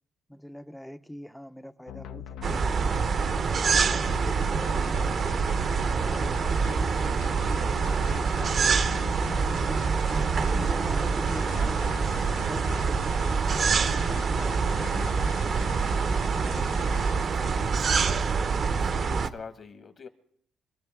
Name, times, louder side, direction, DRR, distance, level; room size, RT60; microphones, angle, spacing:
voice 1, 0.3-2.7 3.1-5.4 5.9-9.8 10.2-11.9 12.3-13.2 13.5-15.7, equal, 5° left, 0.5 m, -43 dB
sound 1, 1.9-17.3, left 10 dB, 85° left, 0.6 m, -43 dB
sound 2, 2.4-19.3, right 5 dB, 50° right, 0.7 m, -26 dB
voice 2, 16.3-20.1, left 5 dB, 50° left, 1.5 m, -46 dB
24.5 x 13.5 x 3.6 m
cardioid pair, 90°, 0 cm